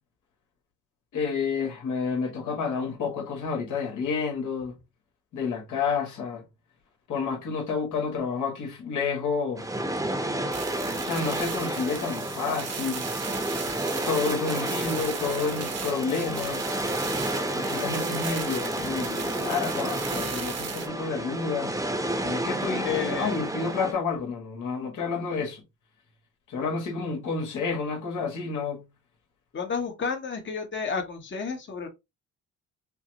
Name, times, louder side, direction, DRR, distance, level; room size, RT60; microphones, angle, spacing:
voice 1, 1.1-4.8 5.3-6.4 7.1-9.7 10.9-13.1 14.0-16.6 17.5-21.7 22.2-25.6 26.5-28.8, left 5 dB, 80° left, 1.5 m, -30 dB
sound 1, 9.6-23.9, right 1 dB, 10° right, 0.9 m, -31 dB
sound 2, 10.5-20.9, right 7 dB, 55° right, 1.1 m, -37 dB
voice 2, 14.5-15.0 22.8-23.4 29.5-31.9, left 5 dB, 40° left, 1.0 m, -31 dB
5.6 x 2.0 x 2.8 m
cardioid pair, 90°, 30 cm